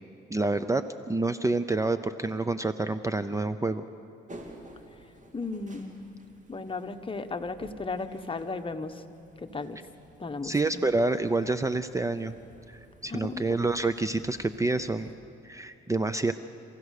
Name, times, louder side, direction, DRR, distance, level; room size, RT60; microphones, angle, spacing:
voice 1, 0.3-3.8 10.4-12.3 12.7-15.1 15.4-16.3, right 2 dB, 15° right, 12 dB, 0.6 m, -28 dB
sound 1, 4.3-15.1, right 1 dB, 40° right, 3.4 m, -52 dB
voice 2, 5.3-6.0 6.5-9.0 9.4-9.8 10.2-10.8 13.1-13.6, left 3 dB, 25° left, 7 dB, 1.3 m, -35 dB
28.5 x 16.0 x 6.6 m, 2.8 s
cardioid pair, 90°, 20 cm